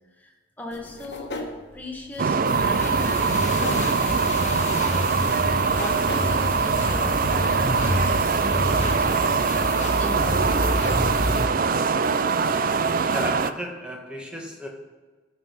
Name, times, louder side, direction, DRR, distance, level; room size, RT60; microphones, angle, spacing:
voice 1, 0.2-1.3 1.7-5.1 5.7-7.6 7.8-9.4 10.0-11.0, left 1 dB, 10° left, 0 dB, 1.5 m, -38 dB
sound 1, 0.7-9.1, left 2 dB, 75° left, 1.3 m, -41 dB
sound 2, 2.2-13.5, right 5 dB, 50° right, 0.5 m, -23 dB
sound 3, 2.4-11.4, left 1 dB, 40° left, 1.3 m, -28 dB
voice 2, 13.1-14.7, equal, 5° right, 0 dB, 1.6 m, -34 dB
14.5 x 5.4 x 6.0 m, 1.3 s
head